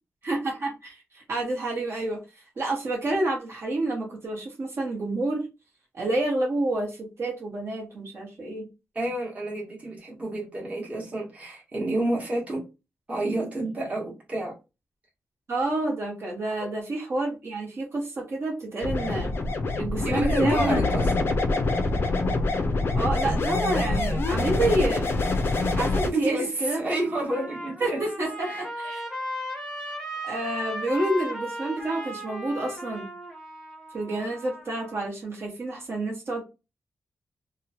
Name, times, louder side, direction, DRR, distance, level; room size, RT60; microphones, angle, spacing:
voice 1, 0.2-2.2 2.6-5.4 5.9-8.7 15.5-19.3 19.8-20.8 22.9-25.1 25.7-26.8 27.8-29.0 30.2-33.1 33.9-36.4, right 2 dB, 50° right, -2 dB, 0.9 m, -29 dB
voice 2, 8.9-12.7 13.1-14.5 20.0-21.1 26.1-28.0 28.5-28.7, right 2 dB, 25° right, -3 dB, 1.0 m, -30 dB
sound 1, 18.8-26.1, left 2 dB, 45° left, 0.4 m, -25 dB
Trumpet, 26.6-35.0, equal, 5° left, 0.7 m, -36 dB
2.9 x 2.1 x 2.7 m, 0.27 s
wide cardioid pair, 170°, 5 cm